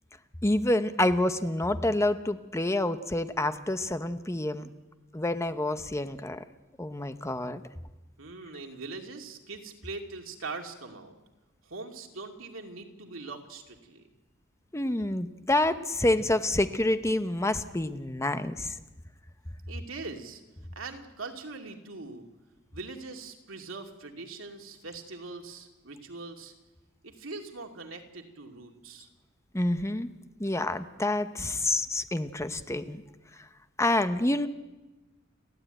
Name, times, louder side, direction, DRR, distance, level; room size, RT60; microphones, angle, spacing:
voice 1, 0.4-4.7 5.1-6.4 6.8-7.6 14.7-18.8 29.5-30.1 30.4-33.0 33.4-33.5 33.8-34.5, left 1 dB, 15° left, 10 dB, 0.9 m, -28 dB
voice 2, 8.2-11.1 11.6-14.1 19.7-20.4 20.8-22.2 22.7-26.5 27.0-29.1, right 3 dB, 85° right, 3 dB, 2.6 m, -42 dB
30.0 x 12.5 x 9.1 m, 1.1 s
head